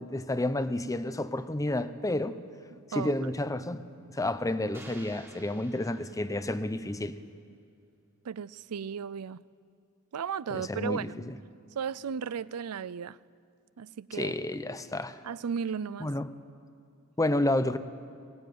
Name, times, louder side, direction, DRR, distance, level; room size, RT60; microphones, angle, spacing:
voice 1, 0.0-2.4 3.0-3.8 4.1-7.2 10.5-11.3 14.1-15.2 16.0-16.3 17.2-17.8, left 1 dB, 15° left, 12 dB, 0.7 m, -30 dB
voice 2, 2.7-3.3 8.2-9.4 10.1-11.1 11.7-13.2 13.8-14.3 15.2-16.1, right 7 dB, 80° right, 19 dB, 0.5 m, -35 dB
sound 1, 4.7-6.9, right 2 dB, 10° right, 2.0 m, -53 dB
21.0 x 18.0 x 9.4 m, 2.4 s
head